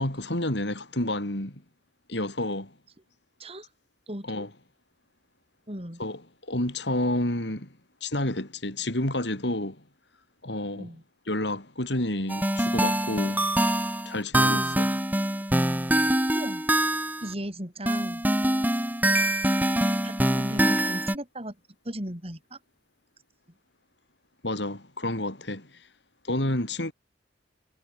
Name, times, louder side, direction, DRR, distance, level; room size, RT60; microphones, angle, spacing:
voice 1, 0.0-1.6 2.1-2.7 4.2-4.5 6.0-6.2 6.5-7.7 8.0-9.8 10.4-10.9 11.3-13.4 14.0-14.9 24.4-25.9 26.2-26.9, left 1 dB, 65° left, 4.6 m, -29 dB
voice 2, 4.1-4.5 5.7-6.0 10.7-11.0 14.5-14.8 16.3-16.6 17.2-18.2 19.5-21.6 21.8-22.6, right 1 dB, 30° right, 8.0 m, -36 dB
sound 1, 12.3-17.3 17.9-21.1, right 1 dB, 10° right, 4.0 m, -24 dB
head